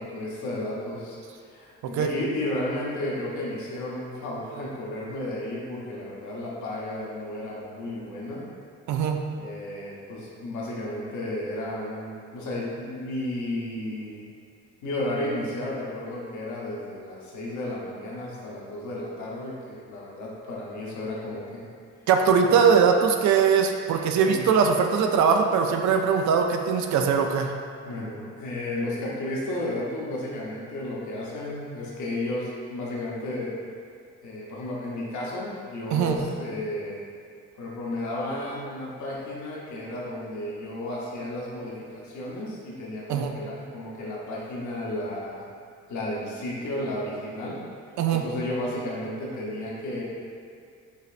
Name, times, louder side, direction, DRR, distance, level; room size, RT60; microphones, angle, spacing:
voice 1, 0.0-8.4 9.4-14.2 14.8-21.7 22.4-22.6 24.2-24.4 27.8-33.6 34.2-37.0 37.5-45.5 45.9-47.6 48.1-50.0, left 1 dB, 75° left, -5 dB, 1.0 m, -33 dB
voice 2, 8.9-9.2 22.1-27.5 35.9-36.2 43.1-43.3 48.0-48.2, right 6 dB, 70° right, 4 dB, 0.4 m, -21 dB
5.3 x 3.1 x 2.5 m, 2.2 s
cardioid pair, 90°, 30 cm